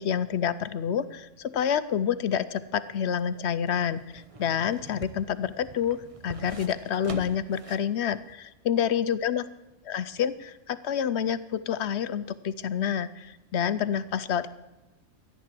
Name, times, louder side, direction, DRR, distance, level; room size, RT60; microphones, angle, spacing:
voice 1, 0.0-9.5 9.9-14.5, left 8 dB, 65° left, 14 dB, 0.8 m, -28 dB
sound 1, 2.8-7.9 8.3-8.4, right 3 dB, 30° right, 0.9 m, -44 dB
13.5 x 10.5 x 7.5 m, 1.0 s
omnidirectional pair, 1.3 m